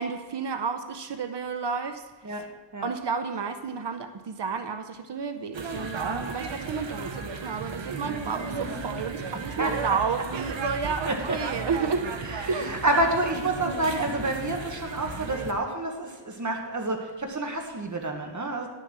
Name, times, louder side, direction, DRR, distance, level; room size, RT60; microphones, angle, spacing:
voice 1, 0.0-2.4 2.8-12.1 12.5-12.8 13.6-13.9, right 5 dB, 70° right, 8 dB, 0.8 m, -31 dB
sound 1, 5.5-15.5, right 4 dB, 90° right, 1.1 m, -34 dB
voice 2, 11.0-11.4 12.2-18.7, right 2 dB, 40° right, 2 dB, 1.6 m, -28 dB
11.0 x 6.9 x 6.1 m, 1.2 s
wide cardioid pair, 95°, 44 cm